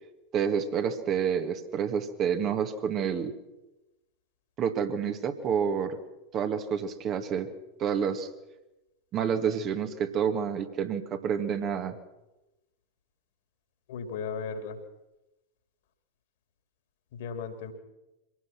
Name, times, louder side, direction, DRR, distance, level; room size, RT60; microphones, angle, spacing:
voice 1, 0.3-3.3 4.6-6.0 6.3-7.5 7.8-8.3 9.1-12.0, right 7 dB, 30° right, 6 dB, 2.0 m, -28 dB
voice 2, 13.9-14.8 17.1-17.7, left 5 dB, 55° left, 6 dB, 3.2 m, -36 dB
25.0 x 18.0 x 6.1 m, 0.99 s
figure-of-eight pair, 90°, 0 cm